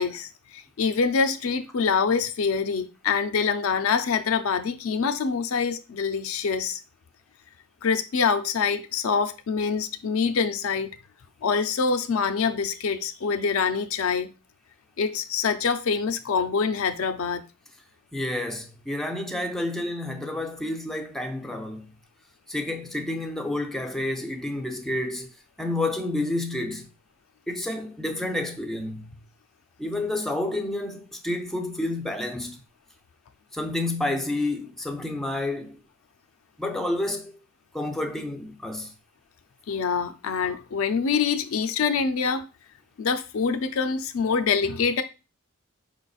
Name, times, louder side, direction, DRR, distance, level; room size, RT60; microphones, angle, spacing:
voice 1, 0.0-6.8 7.8-10.9 11.4-14.3 15.0-17.5 39.7-42.5 43.0-45.0, left 5 dB, 70° left, 0.4 m, -25 dB
voice 2, 18.1-21.9 22.5-25.3 25.6-26.9 27.5-29.2 29.8-32.6 33.5-35.8 36.6-37.4 37.7-38.9, left 1 dB, ahead, 0.5 m, -29 dB
4.8 x 3.9 x 2.4 m
head